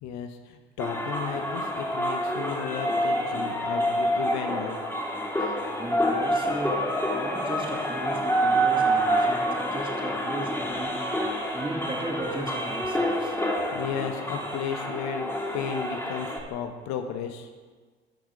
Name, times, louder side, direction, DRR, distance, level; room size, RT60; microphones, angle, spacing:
voice 1, 0.0-4.8 13.7-17.5, left 8 dB, 60° left, 6 dB, 1.3 m, -34 dB
sound 1, 0.8-16.4, equal, 5° left, 2.6 m, -27 dB
voice 2, 5.4-6.8 7.1-10.9 11.5-13.4, right 2 dB, 15° right, 0 dB, 3.1 m, -36 dB
12.0 x 9.7 x 4.9 m, 1.4 s
figure-of-eight pair, 55°, 32 cm